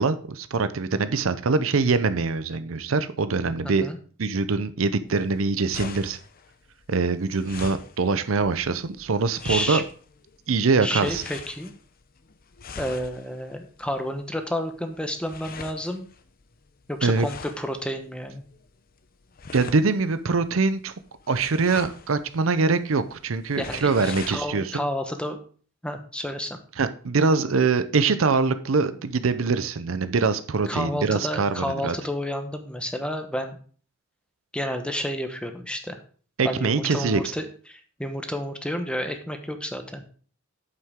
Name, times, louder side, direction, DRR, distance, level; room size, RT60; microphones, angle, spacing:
voice 1, 0.0-3.9 4.2-6.2 6.9-9.8 10.5-11.2 17.0-17.3 19.5-20.9 21.3-24.8 26.8-31.9 36.4-37.2, right 4 dB, 80° right, 12 dB, 0.6 m, -23 dB
voice 2, 3.6-4.0 9.4-9.8 10.8-11.7 12.8-16.1 16.9-18.4 23.6-25.4 25.8-26.6 30.7-33.6 34.5-36.0 36.4-40.1, equal, 5° left, 6 dB, 1.0 m, -30 dB
sound 1, 5.1-24.4, left 5 dB, 45° left, 0.7 m, -43 dB
8.5 x 7.8 x 3.6 m, 0.43 s
head